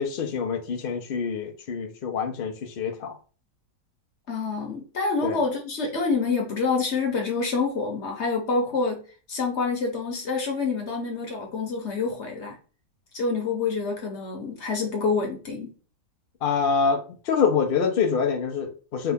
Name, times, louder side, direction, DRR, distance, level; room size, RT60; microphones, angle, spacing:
voice 1, 0.0-3.2 5.2-5.4 16.4-19.1, left 6 dB, 80° left, 0.5 m, -26 dB
voice 2, 4.3-12.6 13.1-15.7, left 4 dB, 50° left, 0.9 m, -27 dB
4.7 x 2.3 x 3.5 m
omnidirectional pair, 1.9 m